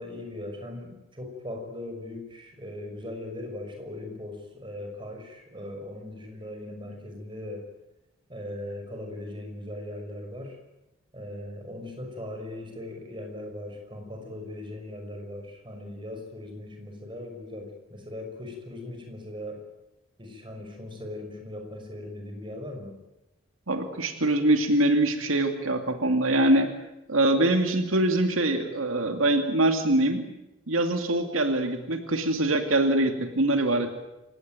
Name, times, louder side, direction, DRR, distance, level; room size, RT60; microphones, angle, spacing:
voice 1, 0.0-7.6 8.3-10.6 11.1-19.6 20.2-22.9, left 1 dB, 25° right, 3 dB, 5.8 m, -39 dB
voice 2, 23.7-26.7 27.1-30.2 30.7-33.9, right 1 dB, 85° right, 5 dB, 2.5 m, -23 dB
28.0 x 17.0 x 9.2 m, 0.93 s
head